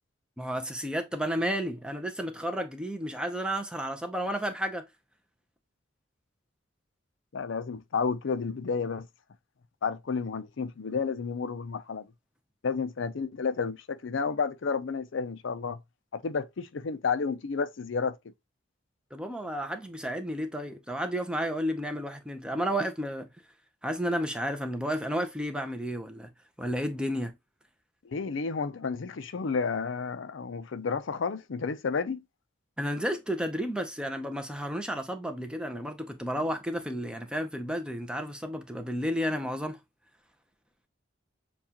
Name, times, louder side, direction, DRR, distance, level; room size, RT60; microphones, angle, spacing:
voice 1, 0.4-4.9 19.1-23.3 23.8-26.3 26.6-27.3 32.8-39.8, equal, 5° right, 0.6 m, -32 dB
voice 2, 7.3-9.1 9.8-12.1 12.6-15.8 16.1-18.1 28.0-32.2, left 5 dB, 70° left, 0.5 m, -31 dB
7.0 x 2.4 x 2.9 m
head